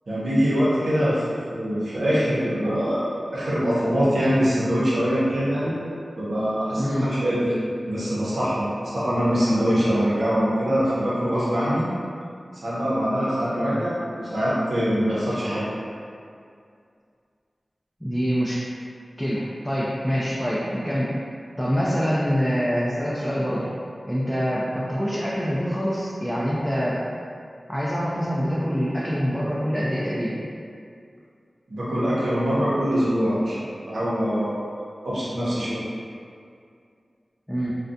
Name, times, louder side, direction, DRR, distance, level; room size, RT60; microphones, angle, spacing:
voice 1, 0.1-1.2 1.5-5.8 6.2-7.5 7.9-11.9 12.6-15.7 31.7-34.6 35.0-35.8, equal, 85° right, -9 dB, 0.7 m, -23 dB
voice 2, 13.5-13.8 18.0-18.6 19.2-21.1 21.6-23.7 24.1-27.0 27.7-30.4 37.5-37.7, equal, 5° left, -7 dB, 0.4 m, -25 dB
2.3 x 2.2 x 2.5 m, 2.3 s
cardioid pair, 40°, 0 cm